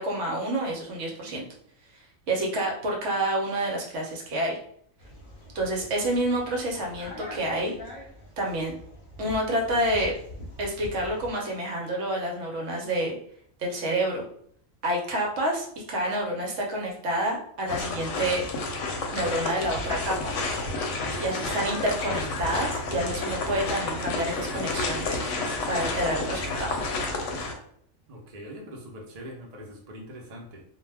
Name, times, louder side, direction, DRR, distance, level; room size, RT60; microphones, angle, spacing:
voice 1, 0.0-1.4 2.3-4.6 5.5-7.8 8.4-8.7 9.2-10.1 10.6-13.2 13.6-14.2 14.8-18.5 19.1-20.3 21.2-25.2 25.7-26.8, right 1 dB, 70° right, 0 dB, 0.9 m, -28 dB
sound 1, 5.0-11.3, left 1 dB, 45° left, 0.8 m, -43 dB
sound 2, 17.7-27.5, left 3 dB, 70° left, 0.9 m, -30 dB
voice 2, 28.1-30.6, equal, 50° right, -1 dB, 0.5 m, -42 dB
2.3 x 2.2 x 3.2 m, 0.65 s
omnidirectional pair, 1.4 m